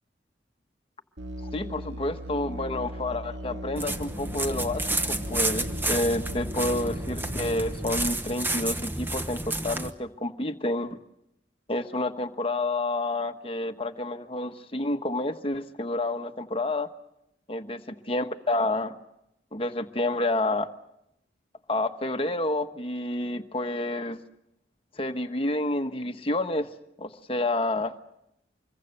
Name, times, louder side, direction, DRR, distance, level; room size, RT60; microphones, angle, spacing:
Musical instrument, 1.2-7.9, equal, 75° right, 2.3 m, -38 dB
voice 1, 1.4-11.0 11.7-16.9 17.5-19.0 19.5-20.7 21.7-24.2 24.9-26.7 27.0-27.9, left 2 dB, 30° left, 7 dB, 1.2 m, -29 dB
sound 1, 3.8-9.9, right 2 dB, 10° right, 1.1 m, -30 dB
26.0 x 22.5 x 6.7 m, 0.82 s
head